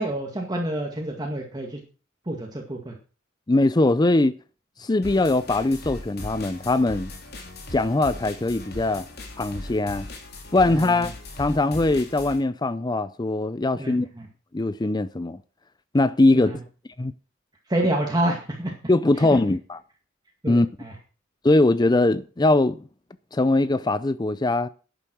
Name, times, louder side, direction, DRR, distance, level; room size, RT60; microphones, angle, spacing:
voice 1, 0.0-1.8 2.3-2.9 10.7-11.1 13.8-13.9 16.3-16.6 17.7-18.7 19.2-19.3 20.4-20.9, right 1 dB, 20° right, 2.0 m, -28 dB
voice 2, 3.5-4.4 4.8-7.1 7.7-9.1 9.4-10.1 10.5-11.1 11.4-14.1 14.5-15.4 15.9-16.5 17.0-17.1 18.9-19.8 20.5-20.7 21.4-22.8 23.3-24.7, left 2 dB, 20° left, 0.5 m, -21 dB
sound 1, 5.0-12.4, left 1 dB, 55° left, 3.2 m, -39 dB
11.5 x 9.0 x 6.2 m
head